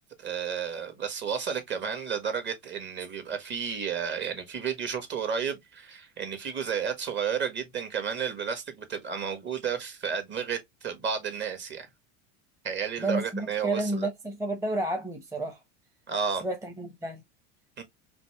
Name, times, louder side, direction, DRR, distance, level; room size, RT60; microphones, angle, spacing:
voice 1, 0.2-11.9 12.6-14.1 16.1-16.4 17.8-17.9, right 7 dB, 30° right, 1.6 m, -32 dB
voice 2, 13.0-15.6 16.4-17.2, right 2 dB, 10° right, 1.0 m, -31 dB
5.1 x 2.8 x 3.1 m
supercardioid pair, 115°, 36 cm